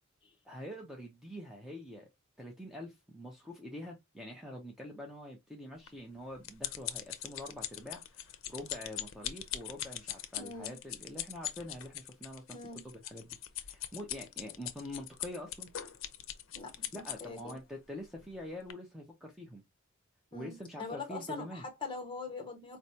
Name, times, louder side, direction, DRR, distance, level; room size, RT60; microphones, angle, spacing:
voice 1, 0.4-2.1 2.4-13.4 13.6-15.7 16.9-19.6 20.3-21.6, left 1 dB, ahead, 0.7 m, -45 dB
sound 1, 5.9-17.5 18.2-18.4 18.7-18.8, left 11 dB, 65° left, 0.6 m, -41 dB
voice 2, 10.4-10.8 12.5-12.8 16.5-17.6 20.3-22.8, left 4 dB, 25° left, 1.3 m, -42 dB
4.4 x 3.2 x 2.7 m
head